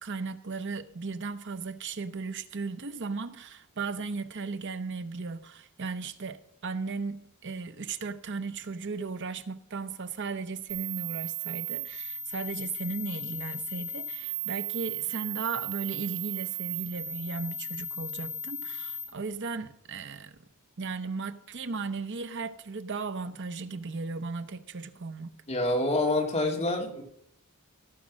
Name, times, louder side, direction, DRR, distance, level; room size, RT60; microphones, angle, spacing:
voice 1, 0.0-20.4 20.8-25.3, right 4 dB, 55° right, 0.9 m, -36 dB
sound 1, 10.7-19.0, right 3 dB, 10° right, 5.3 m, -36 dB
voice 2, 25.5-27.0, left 2 dB, 30° left, 2.7 m, -27 dB
16.0 x 7.6 x 6.3 m
head